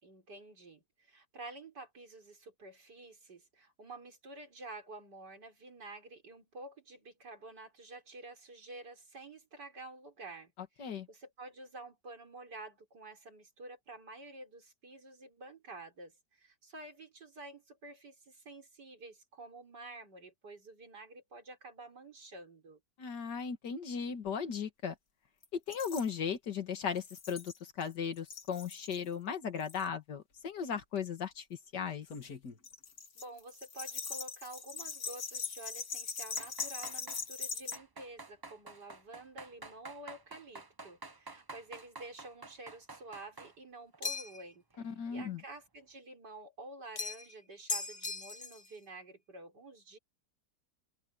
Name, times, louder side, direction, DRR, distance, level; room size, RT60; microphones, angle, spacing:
voice 1, 0.0-10.5 10.8-22.8 33.2-44.8 45.1-50.0, right 2 dB, 75° right, 5.4 m, -50 dB
voice 2, 23.0-25.0 25.5-31.5 31.7-32.1 44.8-45.4, left 6 dB, 80° left, 2.3 m, -37 dB
sound 1, 25.4-25.5 25.7-26.1 27.0-27.9 28.2-29.0 29.6-29.9 30.8-31.0 32.0-37.8, left 5 dB, 60° left, 2.3 m, -41 dB
sound 2, 36.3-37.2 37.7-43.6 43.9-44.3 44.7-44.8, right 3 dB, 25° right, 0.5 m, -50 dB
sound 3, 44.0-44.5 47.0-47.3 47.7-48.7, left 4 dB, 25° left, 0.7 m, -38 dB
open air
omnidirectional pair, 1.8 m